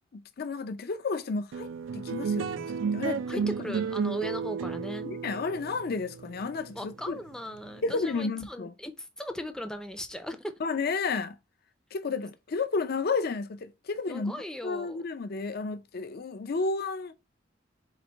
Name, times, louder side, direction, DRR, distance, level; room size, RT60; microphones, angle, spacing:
voice 1, 0.1-3.8 5.0-7.2 7.8-8.7 10.6-11.4 11.9-14.4 14.6-17.1, left 4 dB, 55° left, 0.5 m, -32 dB
sound 1, 1.5-8.2, right 6 dB, 85° right, 0.4 m, -33 dB
voice 2, 3.3-5.1 6.8-10.5 14.1-15.0, equal, 5° left, 0.5 m, -38 dB
4.1 x 2.6 x 4.3 m
head